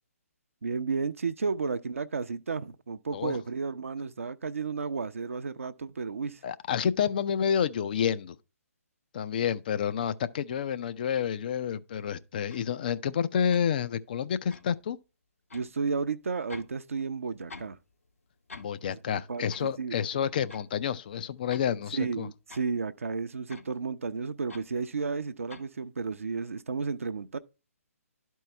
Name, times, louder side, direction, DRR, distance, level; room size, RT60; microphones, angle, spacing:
voice 1, 0.6-6.4 15.5-17.8 18.8-20.0 21.9-27.4, right 4 dB, 60° right, 0.6 m, -33 dB
voice 2, 6.4-8.4 9.1-15.0 18.6-22.3, left 8 dB, 35° left, 0.5 m, -29 dB
sound 1, 12.5-12.7 13.5-13.7 14.5-14.7 15.5-15.7 16.5-16.8 17.0-17.8 18.1-18.2 18.5-18.8 19.5-19.7 20.5-20.7 21.3-21.7 22.5-22.7 23.5-23.7 24.5-24.7 25.5-25.7, left 3 dB, 65° left, 1.4 m, -46 dB
12.0 x 4.6 x 3.3 m
figure-of-eight pair, 135°, 8 cm